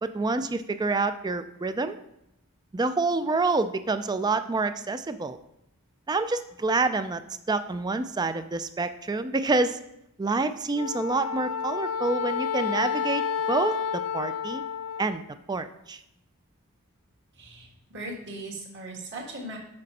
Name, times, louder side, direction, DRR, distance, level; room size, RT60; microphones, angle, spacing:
voice 1, 0.0-2.0 2.7-5.4 6.1-7.2 7.5-9.8 10.2-14.6 15.0-15.2 15.5-16.0, right 3 dB, 20° right, 11 dB, 0.4 m, -27 dB
Wind instrument woodwind instrument, 10.7-15.2, left 7 dB, 70° left, 0.4 m, -30 dB
voice 2, 17.4-19.6, right 2 dB, 55° right, -2 dB, 1.9 m, -39 dB
6.6 x 6.3 x 4.1 m, 0.81 s
head